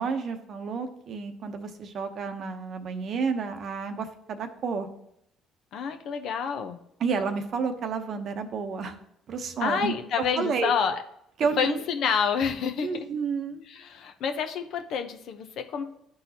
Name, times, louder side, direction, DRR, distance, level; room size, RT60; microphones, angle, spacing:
voice 1, 0.0-4.9 7.0-9.0 9.3-10.0 10.3-10.7 11.4-11.8 12.8-13.6, right 5 dB, 60° right, 7 dB, 0.8 m, -30 dB
voice 2, 5.7-6.8 9.6-11.0 11.6-12.9 13.7-15.8, left 6 dB, 65° left, 7 dB, 0.8 m, -28 dB
11.5 x 4.0 x 2.9 m, 0.77 s
supercardioid pair, 70°, 0 cm